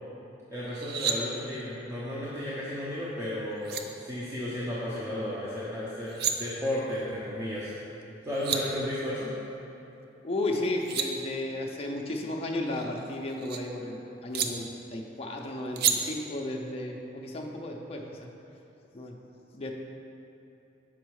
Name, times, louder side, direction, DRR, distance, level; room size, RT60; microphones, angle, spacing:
voice 1, 0.5-6.1 6.4-7.7 8.2-9.3, left 1 dB, 15° right, -9 dB, 0.7 m, -33 dB
sound 1, 0.7-1.2 3.2-3.3 3.6-3.8 5.9-6.3 8.0-8.1 8.3-8.6 10.5-11.1 12.6-13.6 14.3-14.5 15.8-16.0, right 8 dB, 55° right, 0.4 m, -30 dB
voice 2, 10.2-14.6 14.9-18.3 18.9-19.1 19.5-19.7, left 1 dB, 30° left, 1 dB, 0.5 m, -34 dB
6.2 x 4.6 x 4.7 m, 2.9 s
head